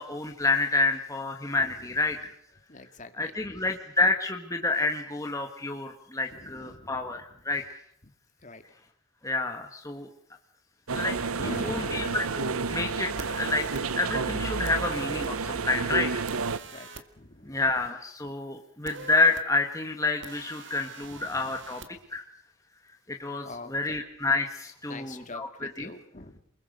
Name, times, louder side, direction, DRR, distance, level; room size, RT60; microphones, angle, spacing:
voice 1, 0.0-2.3 3.1-7.6 9.2-10.1 10.9-11.1 11.4-13.7 14.0-16.1 17.4-21.8 22.1-22.2 23.1-25.9, left 3 dB, 15° left, 3 dB, 1.6 m, -29 dB
voice 2, 1.6-2.3 2.7-3.7 6.3-7.4 8.0-8.1 8.4-8.6 11.4-12.8 16.7-16.9 17.2-17.8 21.1-21.7 23.4-24.0 24.9-26.4, left 2 dB, 35° left, 8 dB, 2.1 m, -44 dB
sound 1, 10.9-16.6, right 4 dB, 85° right, 0.9 m, -30 dB
sound 2, 13.2-13.8 14.6-15.3 16.3-17.0 18.9-19.4 20.2-21.9, right 4 dB, 55° right, 2.1 m, -43 dB
28.5 x 21.5 x 6.7 m, 0.69 s
head